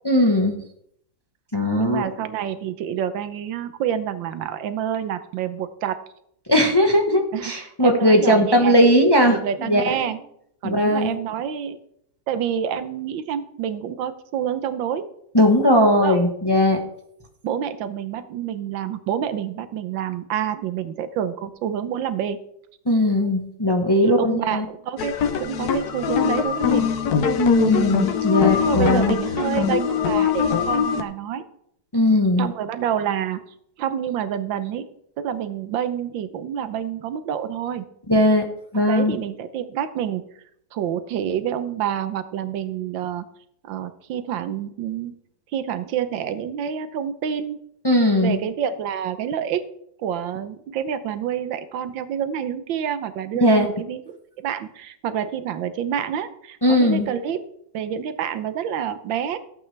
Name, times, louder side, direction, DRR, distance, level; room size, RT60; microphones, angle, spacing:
voice 1, 0.1-0.6 1.5-2.0 6.5-10.1 10.6-11.2 15.3-16.8 22.9-24.6 27.4-29.2 31.9-32.5 38.1-38.4 38.7-39.2 47.8-48.4 53.4-53.7 56.6-57.1, left 1 dB, 15° left, 3 dB, 0.8 m, -18 dB
voice 2, 1.8-6.0 7.3-7.5 7.8-8.8 9.3-10.2 10.6-11.8 12.3-15.1 16.0-16.2 17.4-22.4 24.0-26.9 28.6-31.4 32.4-33.4 33.8-34.9 35.2-37.8 38.7-40.2 40.7-43.2 43.6-45.2 45.5-47.6 48.2-49.6 50.0-57.4 57.7-59.4, right 9 dB, 80° right, 12 dB, 1.5 m, -28 dB
sound 1, 25.0-31.0, left 7 dB, 65° left, 1.3 m, -22 dB
15.0 x 8.4 x 3.3 m, 0.72 s
omnidirectional pair, 2.0 m